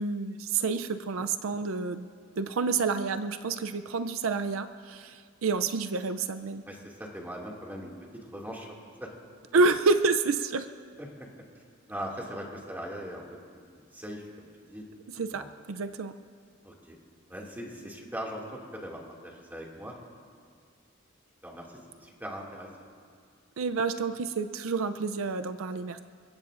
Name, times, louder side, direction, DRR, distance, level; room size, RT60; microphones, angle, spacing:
voice 1, 0.0-2.1 2.4-6.6 9.5-10.7 15.2-16.1 23.6-26.0, right 4 dB, 80° right, 10 dB, 0.5 m, -28 dB
voice 2, 6.7-7.9 8.3-9.1 11.0-11.3 11.9-13.2 13.5-14.8 15.3-15.5 16.6-17.0 17.3-18.4 18.7-19.9 21.4-22.7, equal, 10° right, -2 dB, 2.3 m, -40 dB
29.0 x 16.0 x 2.6 m, 2.1 s
head